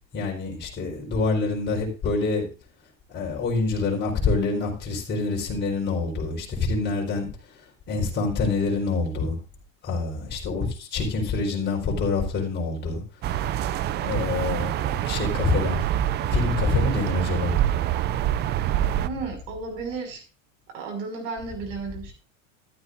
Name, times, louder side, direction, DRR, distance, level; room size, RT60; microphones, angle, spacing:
voice 1, 0.1-2.4 3.1-7.3 7.9-9.4 9.8-13.0 14.0-15.8 16.3-17.6, left 3 dB, 25° left, -1 dB, 4.2 m, -26 dB
sound 1, 13.2-19.1, right 11 dB, 25° right, 0.4 m, -26 dB
voice 2, 19.0-20.2 20.7-22.1, right 4 dB, 75° right, 4 dB, 5.7 m, -33 dB
14.0 x 12.0 x 2.5 m, 0.33 s
supercardioid pair, 130°, 39 cm